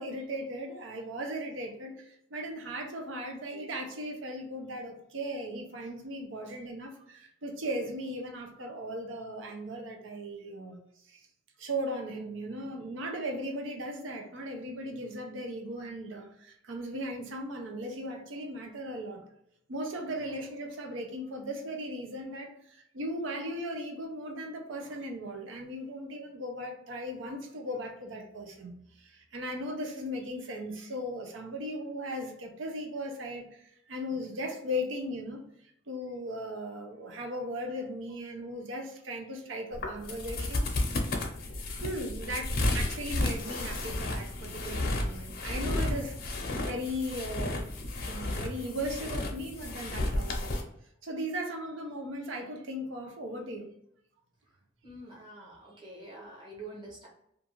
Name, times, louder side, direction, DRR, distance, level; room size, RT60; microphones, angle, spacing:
voice 1, 0.0-10.8 11.1-11.2 11.6-19.3 19.7-35.4 35.9-40.7 41.8-47.7 48.0-50.6 51.0-53.7, equal, 80° right, 4 dB, 0.6 m, -37 dB
sound 1, 39.7-50.6, left 2 dB, 55° left, 0.6 m, -32 dB
voice 2, 54.8-57.1, right 2 dB, 25° right, -5 dB, 0.9 m, -46 dB
2.5 x 2.3 x 2.9 m, 0.73 s
head